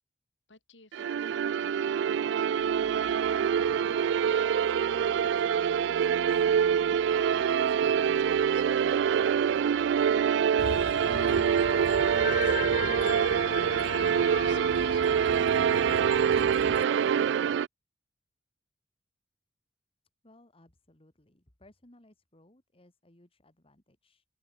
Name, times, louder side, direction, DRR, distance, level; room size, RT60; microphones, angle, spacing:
voice 1, 0.5-6.5 7.4-11.0 11.5-15.8, left 3 dB, 80° left, 7.0 m, -59 dB
sound 1, 0.9-17.7, right 8 dB, 70° right, 0.3 m, -25 dB
sound 2, 2.6-11.2, right 1 dB, 85° right, 6.4 m, -55 dB
sound 3, 10.6-16.8, left 7 dB, 50° left, 0.4 m, -38 dB
voice 2, 20.2-24.2, left 1 dB, 30° left, 2.6 m, -60 dB
open air
head